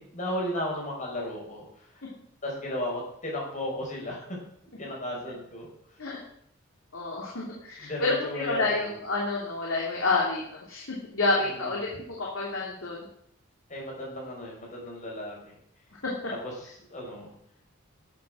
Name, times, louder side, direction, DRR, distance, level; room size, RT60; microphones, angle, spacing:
voice 1, 0.0-2.1 2.4-4.4 4.8-6.0 7.8-8.9 11.4-11.9 13.7-15.5 16.3-17.3, left 1 dB, 35° left, -2 dB, 5.4 m, -35 dB
voice 2, 6.9-11.9 12.2-13.0 16.0-16.1, left 3 dB, 75° left, -4 dB, 3.0 m, -29 dB
13.0 x 7.9 x 6.3 m, 0.68 s
head